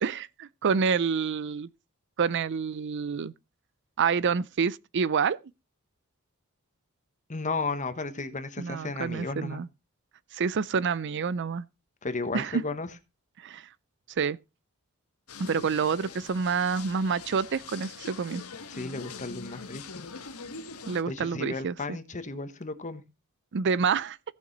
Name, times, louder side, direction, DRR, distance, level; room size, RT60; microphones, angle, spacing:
voice 1, 0.0-1.7 2.2-3.3 4.0-5.4 8.6-9.7 10.3-11.6 12.3-12.6 13.4-13.7 14.2-14.4 15.4-18.4 20.9-22.0 23.5-24.2, right 6 dB, 55° right, 0.5 m, -28 dB
voice 2, 7.3-9.6 12.0-12.9 18.7-20.1 21.1-23.0, left 3 dB, 35° left, 1.3 m, -34 dB
sound 1, 15.3-21.0, left 4 dB, 75° left, 1.5 m, -43 dB
17.0 x 6.6 x 4.1 m
head